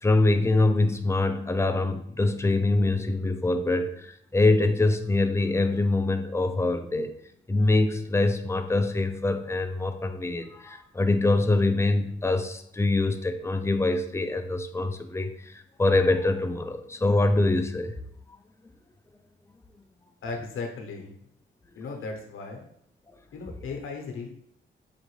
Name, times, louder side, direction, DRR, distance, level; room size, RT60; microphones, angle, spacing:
voice 1, 0.0-7.1 7.5-17.9, left 2 dB, 15° left, 8 dB, 0.4 m, -24 dB
voice 2, 20.2-21.2 21.7-22.7 23.3-24.3, left 4 dB, 75° left, 2 dB, 0.9 m, -36 dB
4.9 x 2.6 x 3.1 m, 0.69 s
cardioid pair, 65°, 21 cm